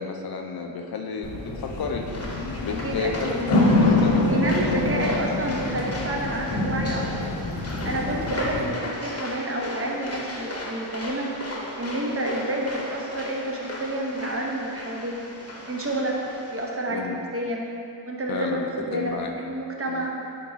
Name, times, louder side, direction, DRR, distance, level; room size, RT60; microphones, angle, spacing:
voice 1, 0.0-2.0 2.6-4.3 4.8-5.2 7.9-8.2 16.9-17.2 18.3-19.3 19.9-20.1, left 5 dB, 50° left, 3 dB, 0.8 m, -32 dB
sound 1, 1.2-8.6, left 2 dB, 70° left, 1.5 m, -25 dB
sound 2, 2.1-16.7, left 1 dB, 30° left, 1.1 m, -37 dB
voice 2, 2.8-3.4 4.3-7.3 7.8-11.3 11.8-15.1 15.7-16.2 16.5-17.6 18.1-20.1, right 1 dB, 30° right, -1 dB, 1.0 m, -29 dB
9.3 x 3.8 x 4.0 m, 2.6 s
cardioid pair, 95°, 46 cm